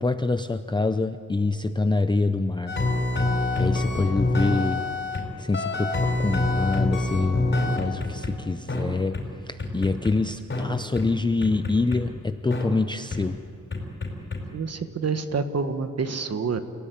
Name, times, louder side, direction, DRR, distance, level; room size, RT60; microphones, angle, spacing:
voice 1, 0.0-2.8 3.6-4.8 5.4-9.2 9.5-13.4, left 3 dB, 15° left, 9 dB, 0.5 m, -26 dB
sound 1, 2.7-5.2 5.5-8.3 8.7-8.8 9.1-9.2 9.6-10.1 10.5-10.6 11.0-11.1 11.4-12.0 12.5-12.6 13.1-13.2 13.7-14.4, left 2 dB, 35° left, 4.9 m, -25 dB
voice 2, 14.5-16.6, right 5 dB, 50° right, 8 dB, 1.5 m, -27 dB
29.5 x 17.0 x 9.4 m, 2.5 s
wide cardioid pair, 135°, 32 cm